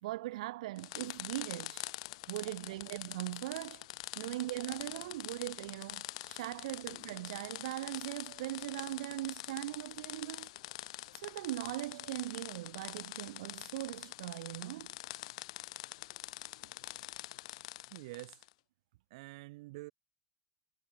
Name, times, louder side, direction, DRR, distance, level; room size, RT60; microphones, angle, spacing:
voice 1, 0.0-1.9 2.3-3.9 4.2-10.5 11.1-14.9, right 17 dB, 90° right, 2.9 m, -40 dB
sound 1, 0.8-18.5, left 19 dB, 75° left, 1.2 m, -45 dB
voice 2, 17.9-18.4 19.1-19.9, right 21 dB, 65° right, 6.1 m, -47 dB
supercardioid pair, 175°, 3 cm